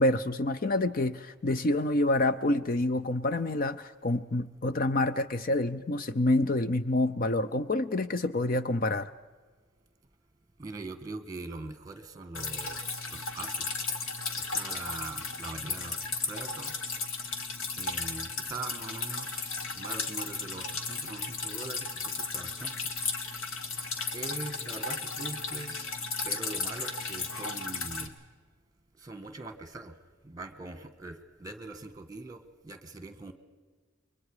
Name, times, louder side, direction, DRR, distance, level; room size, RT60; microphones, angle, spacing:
voice 1, 0.0-9.1, left 2 dB, 45° left, 0.6 m, -27 dB
voice 2, 10.6-13.8 14.4-16.0 16.2-16.7 17.7-22.9 24.1-25.8 26.2-28.2 29.0-29.9 30.2-33.3, right 3 dB, 15° right, 1.6 m, -42 dB
Drip, 12.3-28.1, left 4 dB, 80° left, 1.9 m, -35 dB
29.0 x 23.0 x 5.0 m
head